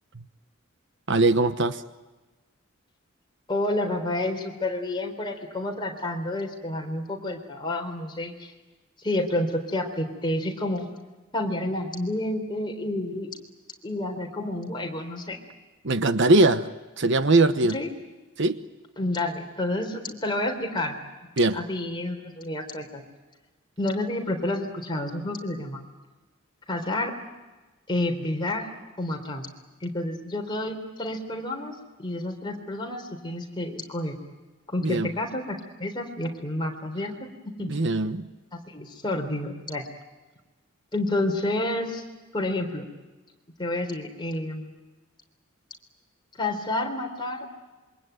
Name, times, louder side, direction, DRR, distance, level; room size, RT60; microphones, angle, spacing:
voice 1, 1.1-1.8 15.8-16.7 17.0-17.8 18.4-18.6 21.4-21.6 34.8-35.1 37.7-38.2, right 2 dB, 60° right, 1.1 m, -21 dB
voice 2, 3.5-8.5 9.0-10.9 11.3-13.3 13.8-15.4 17.7-17.9 19.0-21.0 21.5-23.0 23.8-25.8 26.7-27.1 27.9-28.7 29.0-29.5 29.8-34.2 34.7-37.7 38.5-39.8 40.9-42.0 42.3-42.9 43.6-44.7 46.4-47.5, left 1 dB, 20° left, 3.7 m, -29 dB
27.0 x 24.0 x 9.3 m
head